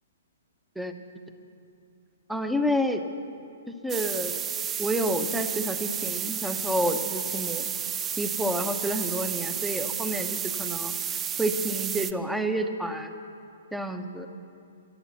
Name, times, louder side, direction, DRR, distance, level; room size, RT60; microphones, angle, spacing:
voice 1, 2.3-3.0 3.8-4.3 4.8-7.7 8.2-10.9 11.4-13.1 13.7-14.3, equal, 5° right, 8 dB, 0.8 m, -29 dB
sound 1, 3.9-12.1, right 8 dB, 20° right, 0.4 m, -31 dB
12.0 x 11.0 x 7.3 m, 2.5 s
figure-of-eight pair, 120°, 0 cm